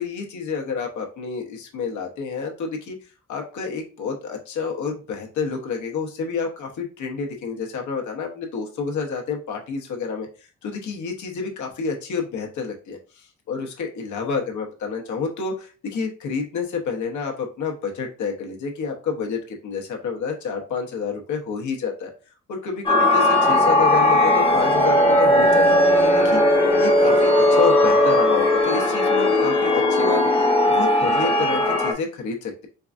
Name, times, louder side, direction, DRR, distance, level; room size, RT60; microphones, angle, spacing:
voice 1, 0.0-3.0 3.3-22.1 22.5-32.7, left 5 dB, 70° left, 1 dB, 0.9 m, -29 dB
sound 1, 22.9-31.9, left 1 dB, 20° left, 0.8 m, -18 dB
4.6 x 2.4 x 2.4 m, 0.36 s
cardioid pair, 110°, 31 cm